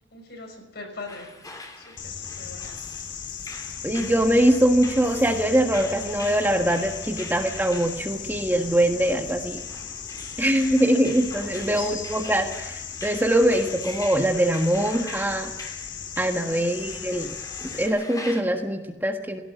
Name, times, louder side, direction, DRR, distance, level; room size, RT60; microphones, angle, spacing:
voice 1, 0.1-1.4 1.7-2.8 9.5-9.6 10.5-11.1 11.5-11.9 16.3-16.8, left 2 dB, 60° left, 3 dB, 6.1 m, -42 dB
sound 1, 1.1-18.4, left 2 dB, 20° left, 3.0 m, -42 dB
sound 2, 2.0-17.9, left 7 dB, 75° left, 2.5 m, -37 dB
voice 2, 3.8-9.6 10.4-15.5 16.2-17.3 17.6-19.4, right 1 dB, 10° right, 4 dB, 1.5 m, -23 dB
17.5 x 17.5 x 9.4 m, 1.0 s
head